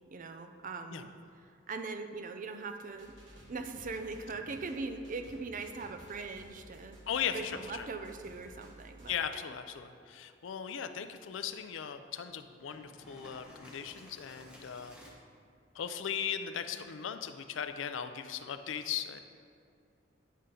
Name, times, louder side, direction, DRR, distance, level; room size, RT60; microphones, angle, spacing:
voice 1, 0.1-1.1 1.7-3.2 3.5-7.0 7.3-9.2, right 3 dB, 45° right, 7 dB, 0.5 m, -40 dB
sound 1, 2.9-9.1, right 1 dB, 75° right, 1.5 m, -55 dB
voice 2, 7.1-7.9 9.1-15.0 15.7-19.2, left 8 dB, 80° left, 9 dB, 0.4 m, -38 dB
sound 2, 12.6-15.1, left 1 dB, 5° right, 1.0 m, -54 dB
9.4 x 5.5 x 3.8 m, 2.5 s
head